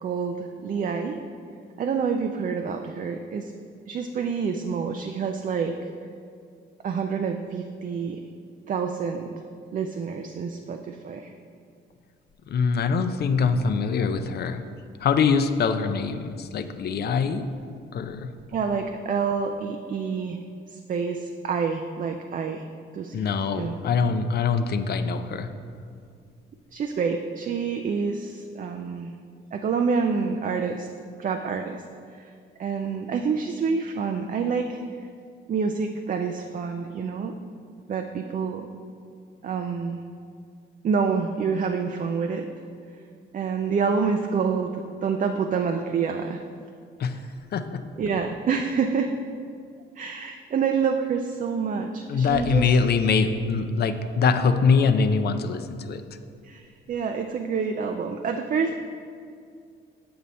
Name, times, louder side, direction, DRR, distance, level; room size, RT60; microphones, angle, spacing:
voice 1, 0.0-1.2 1.8-3.5 3.9-5.8 6.8-8.2 8.7-9.3 9.7-11.3 18.5-20.4 20.7-22.7 22.9-23.8 26.7-29.1 29.5-30.9 31.2-31.8 32.2-32.3 32.6-34.8 35.5-37.3 37.9-38.7 39.4-40.0 40.8-42.5 43.3-46.4 48.0-49.2 50.0-52.8 56.4-58.8, right 5 dB, 45° right, 5 dB, 0.4 m, -27 dB
voice 2, 12.5-14.6 15.0-17.4 17.9-18.3 23.1-25.5 47.0-47.2 47.5-47.8 52.1-56.0, left 5 dB, 55° left, 9 dB, 0.5 m, -23 dB
7.7 x 5.5 x 4.1 m, 2.2 s
cardioid pair, 90°, 20 cm